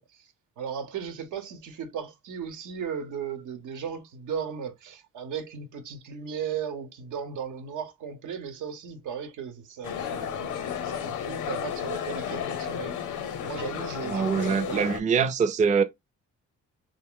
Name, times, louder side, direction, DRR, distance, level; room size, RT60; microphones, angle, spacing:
voice 1, 0.0-12.9 13.4-14.8, right 7 dB, 80° right, 0.8 m, -36 dB
sound 1, 9.8-15.0, left 8 dB, 80° left, 0.6 m, -33 dB
voice 2, 14.0-15.8, right 6 dB, 25° right, 0.4 m, -24 dB
2.4 x 2.0 x 3.6 m
cardioid pair, 90°, 30 cm